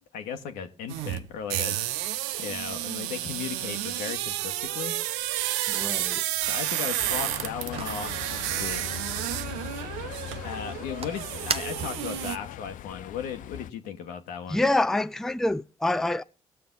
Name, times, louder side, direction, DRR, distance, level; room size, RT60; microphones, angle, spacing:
voice 1, 0.1-1.8 2.4-5.0 6.5-8.9 10.4-14.6, left 7 dB, 75° left, 1.2 m, -36 dB
sound 1, 0.9-12.4, right 14 dB, 80° right, 0.4 m, -31 dB
voice 2, 5.7-6.2 14.5-16.2, left 2 dB, 5° left, 0.4 m, -26 dB
sound 2, 7.0-13.7, left 11 dB, 60° left, 0.5 m, -40 dB
sound 3, 9.4-12.2, right 6 dB, 40° right, 0.7 m, -40 dB
18.5 x 6.7 x 3.8 m
hypercardioid pair, 45°, 15 cm